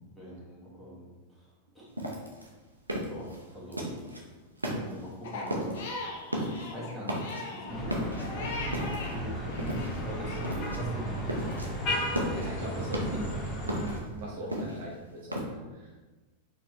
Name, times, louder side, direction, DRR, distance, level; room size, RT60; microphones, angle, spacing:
voice 1, 0.2-1.8 3.1-3.9 4.7-5.8 6.4-11.6, left 1 dB, ahead, -8 dB, 1.5 m, -41 dB
sound 1, 2.0-4.2 4.6-5.1 5.5-5.9 6.2-6.7 7.0-7.6 7.9-9.2 9.6-10.1 10.4-10.8 11.1-11.7 12.0-13.3 13.7-15.4, equal, 85° right, 0.7 m, -34 dB
Crying sobbing, 5.2-9.2 9.5-10.5, left 2 dB, 55° left, 0.7 m, -40 dB
sound 2, 7.7-14.0, equal, 35° left, 1.0 m, -35 dB
voice 2, 12.1-16.1, right 1 dB, 55° right, -4 dB, 1.0 m, -40 dB
4.2 x 3.2 x 3.2 m, 1.2 s
figure-of-eight pair, 90°, 0 cm